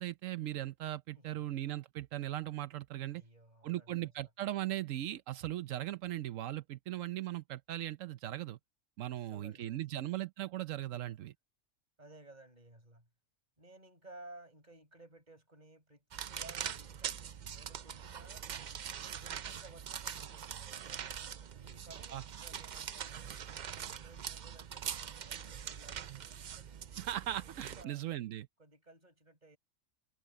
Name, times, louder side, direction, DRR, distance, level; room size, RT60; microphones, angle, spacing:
voice 1, 0.0-3.2 3.6-8.6 9.0-11.3 22.1-22.2 27.0-28.5, right 13 dB, 90° right, 1.0 m, -38 dB
voice 2, 1.1-1.5 3.1-4.1 9.1-10.0 12.0-13.1 13.6-17.2 17.5-21.3 21.6-23.4 23.6-26.7 27.8-28.1 28.6-29.6, right 2 dB, 35° right, 7.7 m, -57 dB
sound 1, 16.1-27.8, right 8 dB, 50° right, 0.5 m, -43 dB
omnidirectional pair, 1.3 m